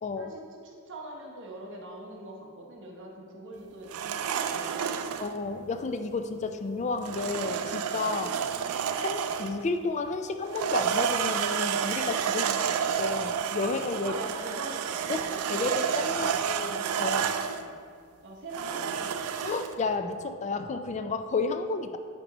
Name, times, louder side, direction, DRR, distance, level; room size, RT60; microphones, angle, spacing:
voice 1, 0.2-5.1 12.4-12.6 14.0-16.4 17.6-17.7 18.2-19.4, right 2 dB, 60° right, -1 dB, 1.1 m, -43 dB
sound 1, 3.9-5.3 7.0-9.6 10.4-17.6 18.5-19.7, right 7 dB, 85° right, 0.4 m, -30 dB
voice 2, 5.2-8.3 9.0-12.5 13.0-14.2 15.1-17.3 19.4-22.0, left 3 dB, 35° left, 8 dB, 0.4 m, -32 dB
8.8 x 3.0 x 5.3 m, 2.1 s
head